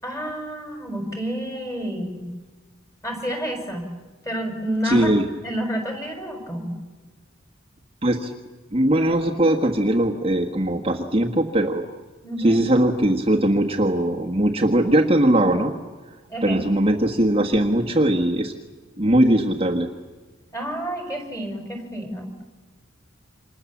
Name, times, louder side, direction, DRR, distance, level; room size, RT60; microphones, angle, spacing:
voice 1, 0.0-2.3 3.0-3.9 4.2-5.1 5.4-6.8 12.2-12.7 16.3-16.6 20.5-22.3, right 1 dB, 15° left, 4 dB, 4.9 m, -29 dB
voice 2, 4.8-5.2 8.0-8.3 8.7-11.8 12.4-15.7 16.4-18.5 19.0-19.9, right 1 dB, 25° right, 0 dB, 1.5 m, -20 dB
28.5 x 27.0 x 7.3 m, 1.3 s
head